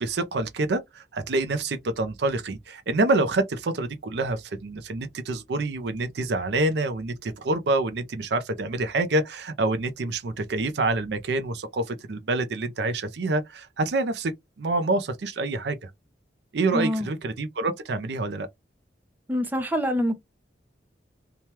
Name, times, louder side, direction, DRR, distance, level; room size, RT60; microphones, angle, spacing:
voice 1, 0.0-14.3 14.6-15.9 16.5-18.5, right 2 dB, 60° right, 0.5 m, -27 dB
voice 2, 16.7-17.1 19.3-20.2, equal, 10° right, 0.5 m, -25 dB
2.8 x 2.2 x 3.1 m
head